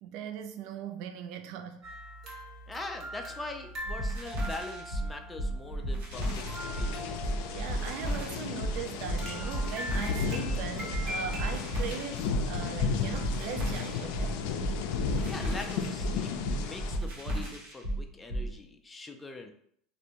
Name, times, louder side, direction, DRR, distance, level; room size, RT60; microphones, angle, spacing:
voice 1, 0.0-1.9 7.5-14.4, right 8 dB, 65° right, 0.4 m, -39 dB
sound 1, 1.8-11.8, equal, 40° right, 1.1 m, -42 dB
voice 2, 2.7-6.5 6.8-7.2 15.3-19.5, left 3 dB, 15° left, 0.4 m, -42 dB
sound 2, 3.8-18.5, right 1 dB, 90° right, 1.1 m, -34 dB
sound 3, 6.1-17.0, left 6 dB, 70° left, 0.4 m, -35 dB
3.2 x 2.6 x 2.9 m
supercardioid pair, 120°, 0 cm